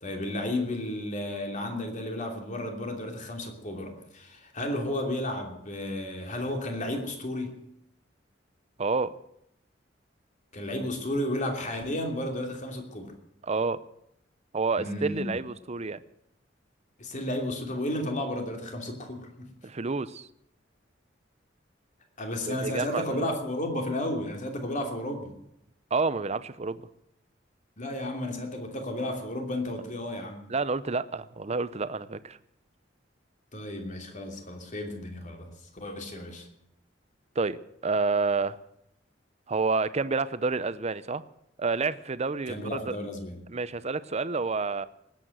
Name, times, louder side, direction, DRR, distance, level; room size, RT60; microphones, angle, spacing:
voice 1, 0.0-7.6 10.5-13.1 14.8-15.4 17.0-19.5 22.2-25.3 27.8-30.4 33.5-36.5 42.5-43.4, left 1 dB, 40° left, 3 dB, 2.9 m, -33 dB
voice 2, 8.8-9.1 13.4-13.8 14.5-16.0 19.6-20.3 22.5-23.3 25.9-26.8 30.5-32.4 37.4-38.6 39.5-41.2 41.6-43.0 43.5-44.9, right 4 dB, 35° right, 15 dB, 0.7 m, -29 dB
19.5 x 8.7 x 7.9 m, 0.79 s
head